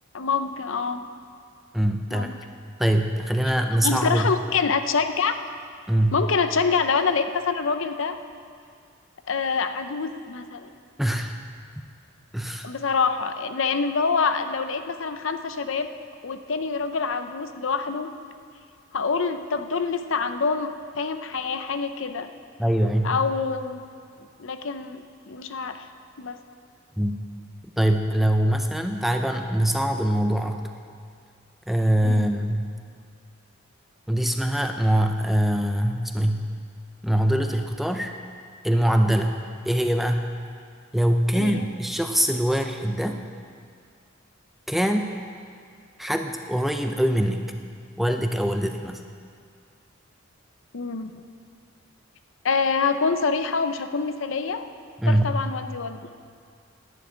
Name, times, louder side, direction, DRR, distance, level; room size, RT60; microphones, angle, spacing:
voice 1, 0.1-1.1 2.1-2.4 3.8-5.4 6.1-8.2 9.3-10.7 12.6-15.9 16.2-18.1 18.9-22.3 23.0-23.8 24.2-25.9 26.2-26.4 32.0-32.3 41.3-41.7 50.7-51.1 52.4-54.6 55.1-56.0, left 5 dB, 65° left, 9 dB, 0.6 m, -26 dB
voice 2, 1.7-2.3 2.8-4.3 5.9-6.2 11.0-11.4 12.3-12.7 22.6-23.1 27.0-27.2 27.8-30.6 31.7-32.7 34.1-36.5 37.0-38.1 38.6-39.3 39.7-40.3 40.9-43.2 44.7-45.1 46.0-47.5 48.0-49.0 55.0-55.4, right 1 dB, ahead, 5 dB, 0.4 m, -23 dB
10.5 x 7.6 x 9.3 m, 2.2 s
head